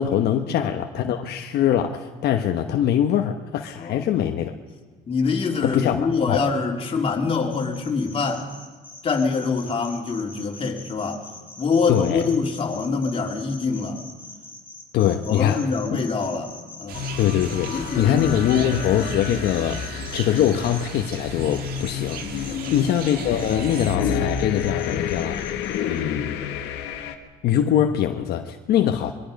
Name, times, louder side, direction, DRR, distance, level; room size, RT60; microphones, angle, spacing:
voice 1, 0.0-4.5 5.6-6.4 11.9-12.2 14.9-15.6 17.2-19.8 20.1-25.4 25.8-26.4 27.4-29.1, left 10 dB, 75° left, 5 dB, 1.1 m, -23 dB
voice 2, 3.8-4.1 5.1-8.5 9.0-11.3 11.6-14.0 15.2-17.1 17.7-18.7 22.5-22.7, left 4 dB, 35° left, 0 dB, 3.3 m, -25 dB
sound 1, 7.5-20.8 21.5-23.1 23.4-26.0, left 3 dB, 10° left, 6.3 m, -43 dB
sound 2, 16.9-27.2, left 8 dB, 90° left, 1.6 m, -30 dB
sound 3, 16.9-24.0, right 7 dB, 65° right, 1.8 m, -37 dB
23.0 x 23.0 x 5.3 m, 1.4 s
cardioid pair, 110°, 17 cm